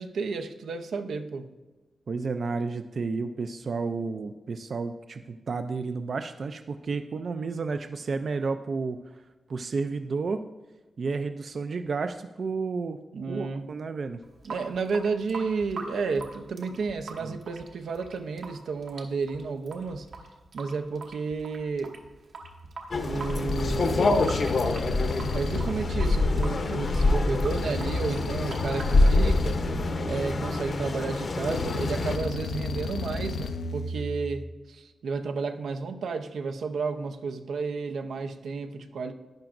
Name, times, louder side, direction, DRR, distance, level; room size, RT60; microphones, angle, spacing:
voice 1, 0.0-1.5 13.1-13.7 14.4-20.1 20.5-22.0 23.0-24.4 25.3-29.6 30.1-39.1, right 4 dB, 85° right, 6 dB, 0.6 m, -32 dB
voice 2, 2.1-9.0 9.5-10.4 11.0-13.0 13.3-14.2 17.2-17.3, right 4 dB, 50° right, 8 dB, 0.4 m, -31 dB
Water tap faucet / Sink (filling or washing) / Drip, 14.2-30.2, right 3 dB, 65° right, 1.3 m, -44 dB
sound 1, 22.4-22.7 23.5-26.8 27.5-30.8 31.5-34.4, left 3 dB, 85° left, 0.5 m, -34 dB
sound 2, 22.9-32.2, left 2 dB, 45° left, 0.8 m, -26 dB
11.5 x 10.0 x 2.5 m, 1.2 s
wide cardioid pair, 145°, 0 cm